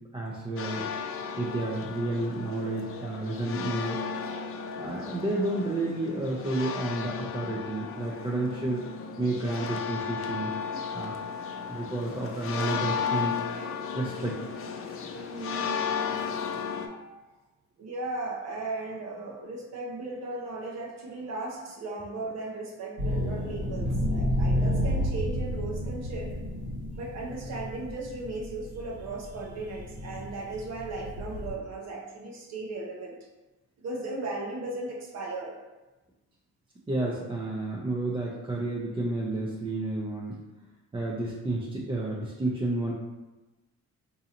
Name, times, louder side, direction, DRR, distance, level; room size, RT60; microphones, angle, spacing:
voice 1, 0.1-0.8 1.4-4.1 4.8-8.8 9.2-10.5 10.9-11.2 11.7-13.4 13.9-14.4 36.9-40.4 40.9-42.9, right 2 dB, 15° right, -5 dB, 0.5 m, -31 dB
sound 1, 0.6-16.9, left 6 dB, 45° left, 0.4 m, -34 dB
voice 2, 15.1-17.2 17.8-26.3 27.0-33.2 33.8-35.6, right 2 dB, 60° right, -1 dB, 0.7 m, -37 dB
sound 2, 23.0-31.5, equal, 85° right, 1.2 m, -31 dB
3.9 x 2.6 x 2.8 m, 1.1 s
cardioid pair, 90°, 30 cm